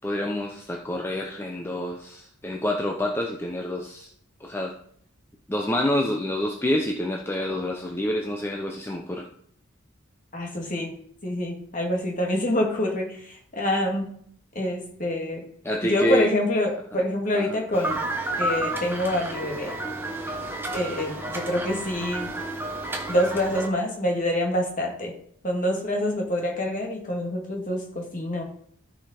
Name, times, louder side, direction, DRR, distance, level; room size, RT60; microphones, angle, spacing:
voice 1, 0.0-4.1 4.4-4.7 5.5-9.3 15.6-16.3 16.9-17.0 17.3-17.6, left 1 dB, 10° left, 1 dB, 0.6 m, -27 dB
voice 2, 10.3-10.9 11.2-14.1 14.6-15.4 15.9-18.0 18.4-19.7 20.7-22.3 23.1-25.1 25.4-28.4, left 1 dB, 35° left, 1 dB, 2.1 m, -26 dB
sound 1, 17.7-23.7, right 1 dB, 10° right, 1.0 m, -31 dB
13.5 x 5.1 x 4.3 m, 0.64 s
head